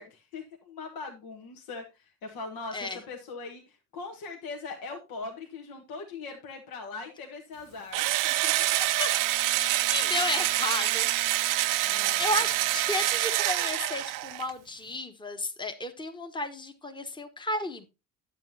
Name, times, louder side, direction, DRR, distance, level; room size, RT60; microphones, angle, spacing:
voice 1, 0.0-8.7 10.0-10.1 11.8-12.4, left 4 dB, 60° left, 1.6 m, -41 dB
Engine / Drill, 7.9-14.5, right 16 dB, 50° right, 0.6 m, -26 dB
voice 2, 9.6-11.1 12.2-17.9, left 2 dB, 10° left, 1.4 m, -33 dB
10.5 x 8.3 x 2.8 m
figure-of-eight pair, 50°, 41 cm